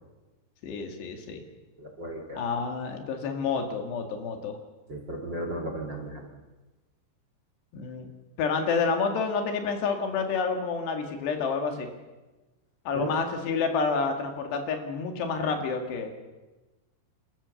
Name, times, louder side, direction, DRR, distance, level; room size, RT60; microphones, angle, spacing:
voice 1, 0.6-1.4 2.3-4.6 7.7-8.1 8.4-11.9 12.9-16.1, left 5 dB, 80° left, 5 dB, 4.2 m, -29 dB
voice 2, 1.8-2.4 4.9-6.3 12.9-13.1, right 1 dB, 30° right, 2 dB, 2.5 m, -35 dB
29.0 x 13.5 x 7.0 m, 1.1 s
omnidirectional pair, 4.8 m